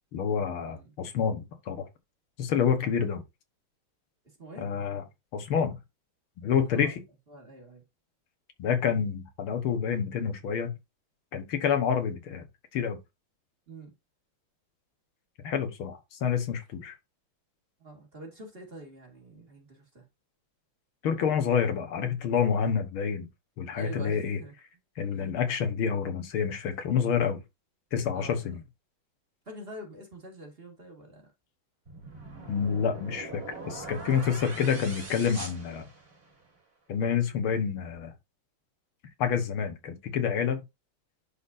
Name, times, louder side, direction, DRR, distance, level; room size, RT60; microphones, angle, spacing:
voice 1, 0.1-1.9 2.4-3.2 4.6-5.0 5.3-5.8 6.4-7.0 8.6-10.7 11.3-12.4 12.7-13.0 15.4-16.9 21.0-23.3 23.6-24.4 25.0-27.4 27.9-28.6 32.5-35.9 36.9-38.1 39.2-40.6, left 7 dB, 90° left, 2.1 m, -28 dB
voice 2, 4.4-4.7 6.7-6.9 7.3-7.8 13.7-13.9 17.8-20.0 23.7-24.5 25.1-25.3 28.1-28.5 29.5-31.3, equal, 30° right, 2.1 m, -45 dB
sound 1, 31.9-36.5, right 3 dB, 45° right, 3.6 m, -42 dB
11.0 x 4.1 x 2.6 m
omnidirectional pair, 2.3 m